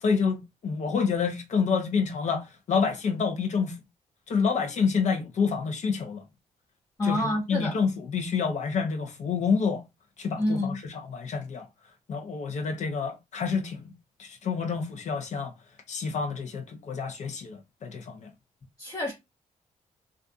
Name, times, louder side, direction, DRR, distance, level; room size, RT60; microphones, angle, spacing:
voice 1, 0.0-3.8 4.3-6.2 7.0-9.8 10.2-11.7 12.1-13.9 14.2-15.5 15.9-18.3, left 5 dB, 55° left, 0.7 m, -28 dB
voice 2, 7.0-7.8 10.4-10.8 18.8-19.1, left 1 dB, 30° left, 0.8 m, -28 dB
2.4 x 2.4 x 2.5 m
supercardioid pair, 60°, 14 cm